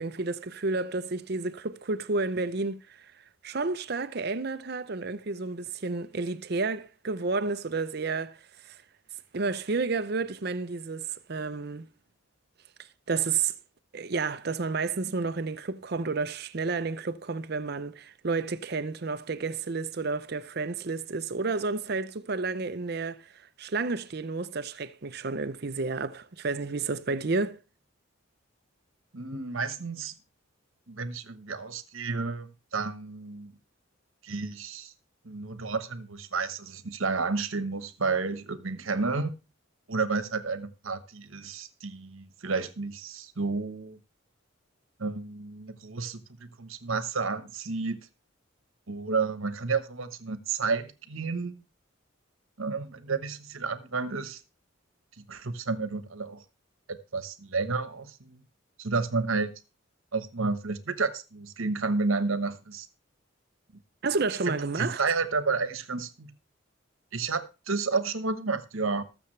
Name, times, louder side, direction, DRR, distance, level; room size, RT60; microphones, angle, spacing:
voice 1, 0.0-2.8 3.4-8.4 8.7-8.8 9.3-11.9 13.1-13.5 13.9-23.2 23.6-27.6 64.0-65.0, right 4 dB, 50° right, 0.6 m, -31 dB
voice 2, 29.1-30.1 30.9-33.5 34.2-34.9 35.2-39.4 39.9-44.0 45.0-48.0 48.9-51.6 52.6-54.4 55.3-56.4 56.9-58.4 58.8-59.5 60.1-62.9 64.5-66.3 67.1-69.0, right 4 dB, 80° right, 1.2 m, -31 dB
19.5 x 7.0 x 3.3 m
head